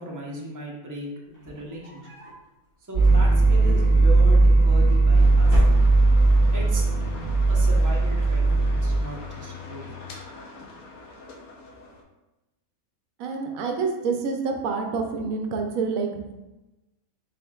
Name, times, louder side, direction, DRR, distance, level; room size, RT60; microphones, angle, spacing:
voice 1, 0.0-2.1 2.9-5.6 6.5-6.9 7.5-10.0 10.6-10.7, right 1 dB, 20° right, -3 dB, 0.6 m, -37 dB
sound 1, 1.3-2.5 2.9-3.6 4.6-5.1 5.4-6.3, equal, 65° left, 1.8 m, -33 dB
sound 2, 2.9-9.0, right 2 dB, 45° right, 1.6 m, -18 dB
sound 3, 5.1-12.0, left 5 dB, 90° left, 1.2 m, -41 dB
voice 2, 13.2-16.3, right 4 dB, 80° right, 4 dB, 1.0 m, -27 dB
4.9 x 4.2 x 2.3 m, 1.0 s
omnidirectional pair, 1.5 m